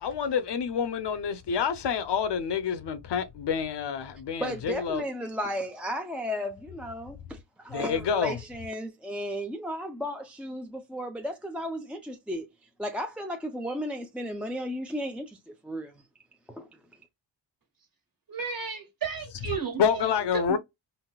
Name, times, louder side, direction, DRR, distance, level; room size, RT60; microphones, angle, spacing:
voice 1, 0.0-5.0 7.7-8.4 19.8-20.6, left 7 dB, 65° left, 0.6 m, -28 dB
voice 2, 4.4-12.5 12.8-16.0, equal, 5° right, 0.4 m, -34 dB
voice 3, 18.3-19.8 20.3-20.6, right 6 dB, 45° right, 1.4 m, -33 dB
3.9 x 2.1 x 2.2 m
cardioid pair, 80°, 46 cm